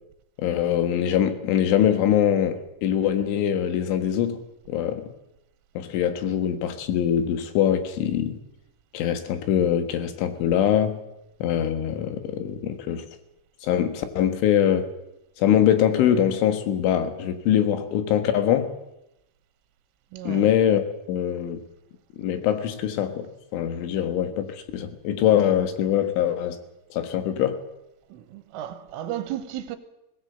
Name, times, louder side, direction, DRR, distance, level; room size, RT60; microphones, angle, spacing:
voice 1, 0.4-4.4 4.7-5.1 5.8-8.4 8.9-11.0 11.4-13.1 13.6-14.9 15.4-18.7 20.3-20.8 21.1-21.6 22.2-26.6 26.9-27.6, left 10 dB, 75° left, 3.9 m, -23 dB
voice 2, 20.1-20.5 28.1-29.8, right 12 dB, 90° right, 3.8 m, -34 dB
19.0 x 18.0 x 8.0 m
omnidirectional pair, 5.6 m